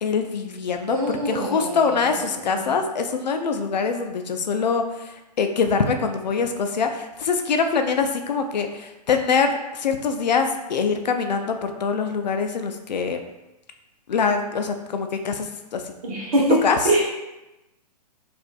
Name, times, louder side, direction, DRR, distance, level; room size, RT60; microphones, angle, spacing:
voice 1, 0.0-13.2 14.1-15.8 16.6-16.8, left 5 dB, 85° left, 6 dB, 0.5 m, -24 dB
voice 2, 0.9-2.7 16.0-17.1, right 1 dB, 55° right, -4 dB, 1.1 m, -24 dB
4.2 x 2.5 x 2.3 m, 0.98 s
hypercardioid pair, 130°, 21 cm